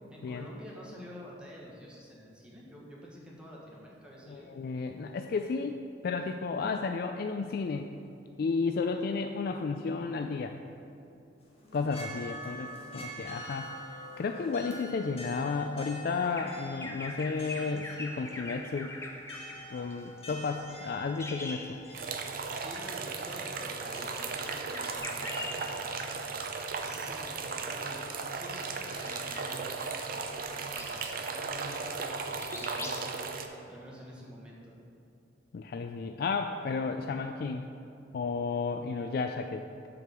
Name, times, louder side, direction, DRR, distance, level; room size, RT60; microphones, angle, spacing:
voice 1, 0.1-4.5 12.4-12.7 22.4-26.3 26.8-33.4 33.7-34.7, equal, 5° right, -5 dB, 1.4 m, -48 dB
voice 2, 4.3-7.9 8.4-10.5 11.7-18.9 19.7-21.8 35.5-37.7 38.1-39.9, left 4 dB, 55° left, 6 dB, 0.3 m, -33 dB
sound 1, 11.4-25.0, equal, 35° left, 1.6 m, -46 dB
Bird vocalization bird call bird song, 16.2-22.3 22.6-22.8 23.9-26.1 26.6-27.3 27.6-32.1 32.4-33.0, left 2 dB, 15° left, 0.6 m, -44 dB
sound 2, 21.9-33.5, right 4 dB, 50° right, 0.6 m, -36 dB
7.7 x 5.0 x 6.9 m, 2.6 s
head